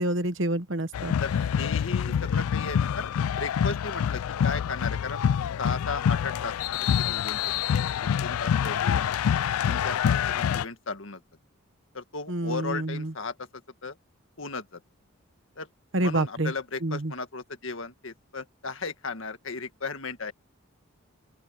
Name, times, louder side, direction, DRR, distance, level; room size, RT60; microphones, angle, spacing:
voice 1, 0.0-1.1 12.3-13.1 15.9-16.5 16.8-17.1, right 1 dB, 60° right, 1.3 m, -28 dB
sound 1, 0.9-10.6, left 8 dB, 90° left, 0.3 m, -26 dB
voice 2, 1.2-3.1 3.4-5.2 5.6-6.5 6.8-7.7 8.0-9.2 9.6-11.2 11.9-13.5 13.8-14.0 14.4-14.8 15.6-15.7 16.0-20.3, left 4 dB, 65° left, 1.8 m, -35 dB
open air
head